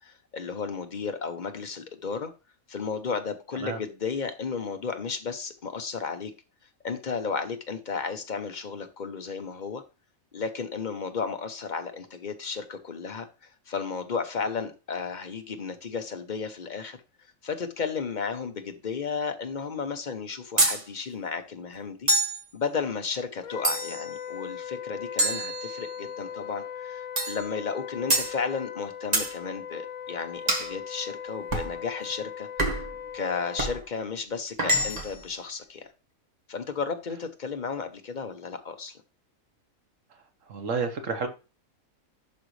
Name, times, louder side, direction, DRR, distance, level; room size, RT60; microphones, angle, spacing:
voice 1, 0.0-2.3 2.7-6.3 6.8-9.8 10.3-17.0 17.4-22.1 22.5-32.8 33.1-35.9 36.5-39.0, left 5 dB, 40° left, 7 dB, 0.8 m, -33 dB
sound 1, 20.6-20.8 22.1-22.4 23.6-24.1 25.2-26.1 27.2-27.4 28.1-28.3 29.1-29.3 30.5-30.7 31.5-31.7 32.6-32.9 33.6-33.8 34.6-35.2, right 1 dB, 30° right, 1.4 m, -26 dB
Wind instrument woodwind instrument, 23.4-33.8, left 8 dB, 70° left, 1.1 m, -39 dB
voice 2, 40.5-41.3, right 4 dB, 65° right, 6 dB, 1.4 m, -29 dB
11.0 x 3.9 x 3.2 m, 0.31 s
omnidirectional pair, 1.4 m